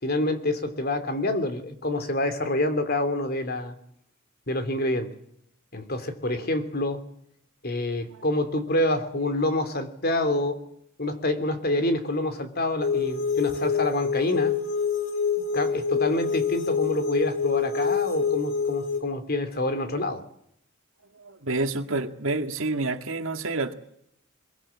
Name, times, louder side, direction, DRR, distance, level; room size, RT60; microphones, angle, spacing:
voice 1, 0.0-3.7 4.5-5.2 5.7-7.1 7.6-10.6 11.0-14.6 15.5-20.2, left 1 dB, 50° left, 9 dB, 3.0 m, -27 dB
sound 1, 12.8-19.0, left 6 dB, 90° left, 4.0 m, -26 dB
voice 2, 21.2-23.7, right 2 dB, 80° right, 7 dB, 2.0 m, -28 dB
24.0 x 22.0 x 8.7 m, 0.72 s
head